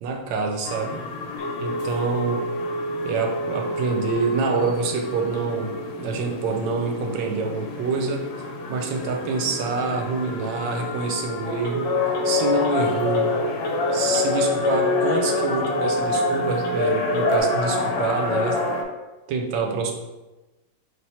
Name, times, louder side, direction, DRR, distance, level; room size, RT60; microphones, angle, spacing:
voice 1, 0.0-1.0 1.6-2.4 3.0-8.3 8.7-12.0 12.2-13.4 13.9-18.6 19.3-19.9, right 4 dB, 90° right, 2 dB, 1.3 m, -26 dB
sound 1, 0.6-18.8, left 4 dB, 90° left, 1.3 m, -27 dB
Telephone, 1.4-17.4, right 3 dB, 70° left, 0.7 m, -32 dB
3.4 x 2.8 x 4.1 m, 1.1 s
omnidirectional pair, 1.9 m